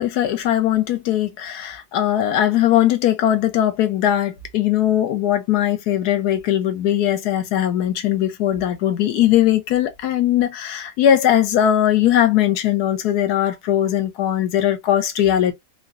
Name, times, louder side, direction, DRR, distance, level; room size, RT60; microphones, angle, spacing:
voice 1, 0.0-15.5, left 11 dB, 80° left, 1.2 m, -19 dB
3.7 x 2.0 x 2.4 m
omnidirectional pair, 1.6 m